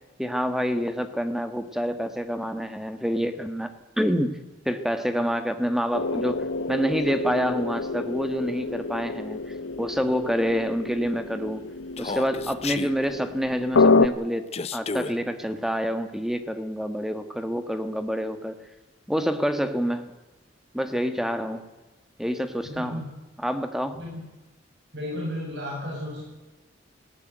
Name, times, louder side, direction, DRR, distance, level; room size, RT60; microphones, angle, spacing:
voice 1, 0.2-3.7 4.0-4.4 4.6-11.6 12.0-14.5 14.7-18.5 19.1-20.1 20.7-21.7 22.2-23.0 23.4-24.0, equal, ahead, 9 dB, 1.4 m, -27 dB
sound 1, 5.9-14.1, left 3 dB, 90° left, 0.9 m, -27 dB
Human voice, 12.0-12.9 14.5-15.1, left 4 dB, 35° left, 0.7 m, -31 dB
voice 2, 22.6-23.1 23.9-24.2 24.9-26.2, left 1 dB, 60° right, -3 dB, 7.3 m, -33 dB
18.5 x 17.0 x 9.3 m, 1.2 s
head